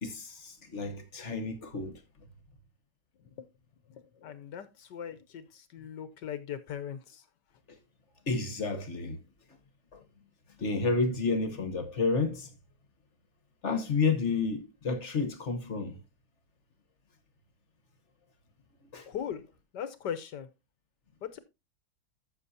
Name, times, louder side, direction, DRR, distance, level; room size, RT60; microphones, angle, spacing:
voice 1, 0.0-2.0 8.3-9.2 9.9-10.0 10.6-12.5 13.6-16.0 18.9-19.1, left 4 dB, 40° left, 1.2 m, -30 dB
voice 2, 3.9-7.2 19.1-19.5 19.7-20.5 21.2-21.4, left 9 dB, 65° left, 1.3 m, -39 dB
13.5 x 6.7 x 2.7 m
omnidirectional pair, 2.3 m